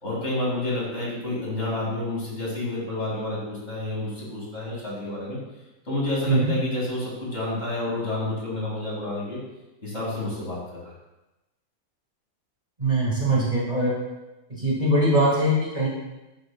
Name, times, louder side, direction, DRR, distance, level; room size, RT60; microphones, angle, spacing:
voice 1, 0.0-5.4 5.8-9.4 9.8-10.9, left 2 dB, 50° left, -5 dB, 2.7 m, -29 dB
voice 2, 12.8-13.9 14.6-15.9, right 1 dB, 30° right, -6 dB, 2.1 m, -22 dB
11.0 x 6.7 x 2.3 m, 1.0 s
omnidirectional pair, 1.5 m